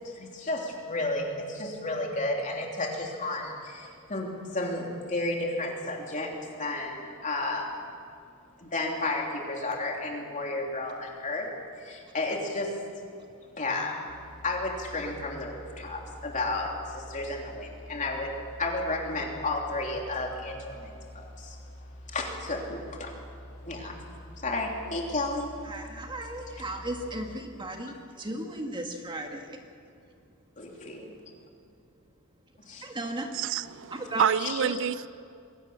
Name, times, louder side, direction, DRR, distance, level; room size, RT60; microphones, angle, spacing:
voice 1, 0.0-6.3 6.6-7.8 8.6-11.5 11.8-12.7 13.6-14.0 14.4-18.3 18.6-21.6 22.1-23.1 23.7-24.0 24.4-25.5 30.6-31.1 32.6-32.9 34.4-34.6, left 2 dB, 35° left, 0 dB, 3.2 m, -32 dB
sound 1, 14.1-27.4, equal, 90° left, 4.9 m, -46 dB
voice 2, 25.7-29.6 32.8-33.3 33.9-34.3 34.6-34.8, right 1 dB, 20° right, 3 dB, 1.8 m, -35 dB
voice 3, 33.3-35.1, right 8 dB, 60° right, 18 dB, 0.5 m, -28 dB
22.5 x 17.5 x 7.0 m, 2.5 s
head